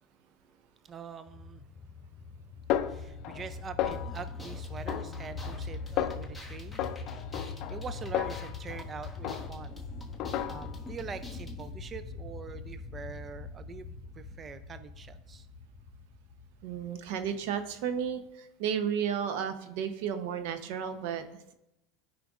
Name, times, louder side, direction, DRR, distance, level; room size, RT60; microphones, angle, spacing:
voice 1, 0.8-1.6 2.8-6.9 7.7-9.8 10.5-15.5, right 6 dB, 30° right, 11 dB, 0.3 m, -44 dB
sound 1, 1.3-18.3, left 4 dB, 30° left, 1.9 m, -43 dB
Snare drum, 2.7-3.5 3.8-4.4 4.9-5.7 6.0-6.4 6.8-8.9 9.2-9.8 10.2-10.9, left 11 dB, 55° left, 0.4 m, -34 dB
sound 2, 3.9-11.7, left 2 dB, 5° left, 1.1 m, -50 dB
voice 2, 16.6-21.5, right 8 dB, 75° right, 9 dB, 0.7 m, -33 dB
13.5 x 5.0 x 2.4 m, 0.88 s
supercardioid pair, 120°, 0 cm